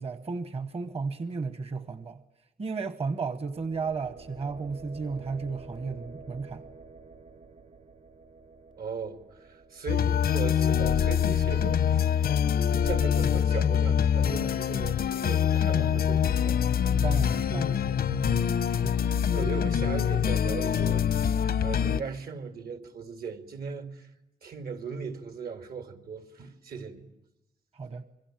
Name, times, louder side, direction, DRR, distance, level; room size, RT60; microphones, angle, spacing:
voice 1, 0.0-2.2 2.6-6.6 16.9-18.4 18.7-19.0 27.7-28.0, right 4 dB, 40° right, 1.0 m, -34 dB
sound 1, 3.3-13.2, right 4 dB, 55° right, 2.7 m, -50 dB
voice 2, 8.8-12.2 12.6-16.6 17.3-18.0 18.8-24.1 24.4-27.1, right 5 dB, 80° right, 2.6 m, -38 dB
sound 2, 9.9-22.0, left 8 dB, 90° left, 0.9 m, -25 dB
26.5 x 23.5 x 8.9 m
wide cardioid pair, 160°, 15 cm